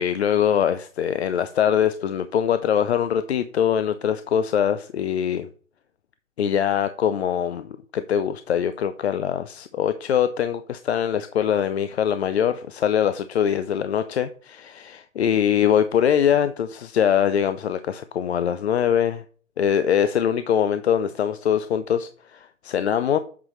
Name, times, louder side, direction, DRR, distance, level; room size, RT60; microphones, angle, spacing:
voice 1, 0.0-5.5 6.4-19.2 19.6-23.2, left 9 dB, 55° left, 0.6 m, -23 dB
8.4 x 5.7 x 3.1 m
hypercardioid pair, 145°, 39 cm